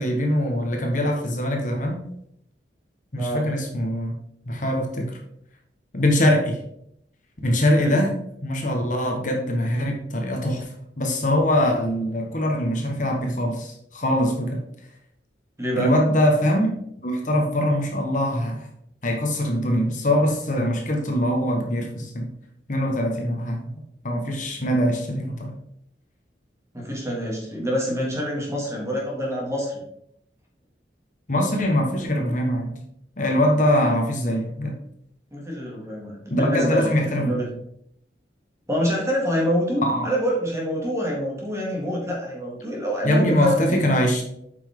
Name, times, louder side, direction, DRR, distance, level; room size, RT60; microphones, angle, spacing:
voice 1, 0.0-2.0 3.1-4.1 4.5-5.2 5.9-6.6 7.4-8.1 8.4-10.7 11.0-14.6 15.8-16.7 17.0-18.7 19.0-22.3 22.7-23.7 24.0-25.5 31.3-32.8 33.2-34.8 36.3-37.3 39.8-40.1 43.0-44.2, equal, 45° left, 2 dB, 1.3 m, -22 dB
voice 2, 3.2-3.5 7.8-8.0 15.6-15.9 26.7-29.8 35.3-37.5 38.7-43.9, equal, 15° right, -3 dB, 2.3 m, -26 dB
8.2 x 5.8 x 3.7 m, 0.74 s
head